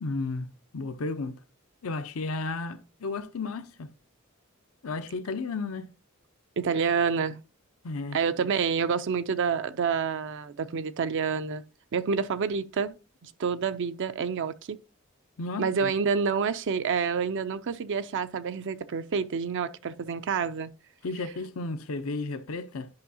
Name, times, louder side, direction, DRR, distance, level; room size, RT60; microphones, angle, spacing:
voice 1, 0.0-0.5 0.7-1.4 1.8-3.9 4.8-5.9 7.8-8.2 15.4-15.9 21.0-22.9, left 3 dB, 70° left, 0.6 m, -33 dB
voice 2, 6.6-7.4 8.1-11.6 11.9-13.0 13.2-14.8 15.6-20.7, right 6 dB, 60° right, 0.4 m, -28 dB
10.5 x 5.4 x 2.7 m
head